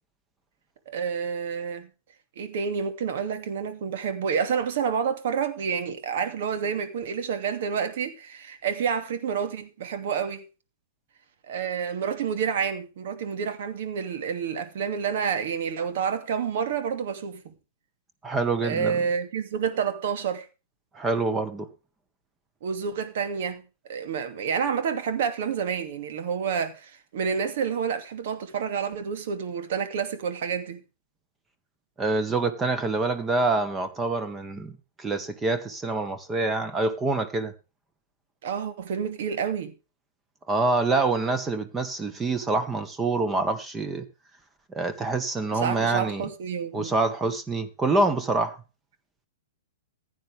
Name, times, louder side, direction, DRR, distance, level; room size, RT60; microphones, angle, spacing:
voice 1, 0.9-1.9 2.4-10.4 11.5-17.5 18.6-20.5 22.6-23.6 23.9-30.8 38.4-39.7 45.5-46.9, right 7 dB, 55° right, 2.7 m, -29 dB
voice 2, 18.2-19.0 20.9-21.7 32.0-34.7 35.0-37.5 40.5-44.0 44.8-46.3 46.7-48.6, right 3 dB, 15° right, 1.8 m, -26 dB
15.5 x 9.8 x 3.6 m
hypercardioid pair, 115°, 0 cm